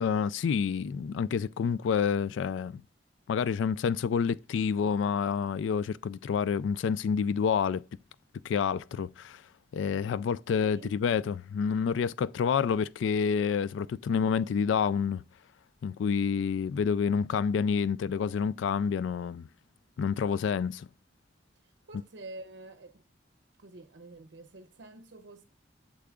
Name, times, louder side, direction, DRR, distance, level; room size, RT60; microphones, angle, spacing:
voice 1, 0.0-2.8 3.3-7.8 8.4-9.4 9.7-15.2 15.8-19.5 20.0-20.9, left 6 dB, 85° left, 0.3 m, -28 dB
voice 2, 10.6-10.9 21.9-23.0 23.6-25.4, right 2 dB, 70° right, 0.7 m, -47 dB
8.4 x 7.7 x 2.4 m
head